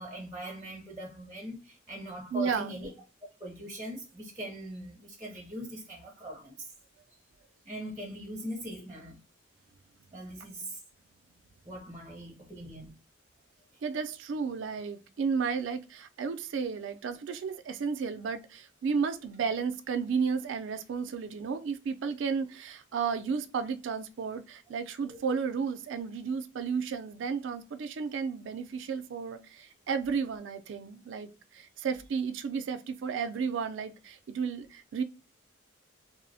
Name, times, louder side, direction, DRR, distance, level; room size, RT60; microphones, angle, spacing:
voice 1, 0.0-2.9 3.4-6.7 7.6-9.2 10.1-10.8 11.6-12.9 25.1-25.2, equal, 15° right, 0.5 m, -41 dB
voice 2, 2.3-2.8 13.8-35.0, right 5 dB, 65° right, 0.3 m, -33 dB
2.9 x 2.0 x 2.6 m
head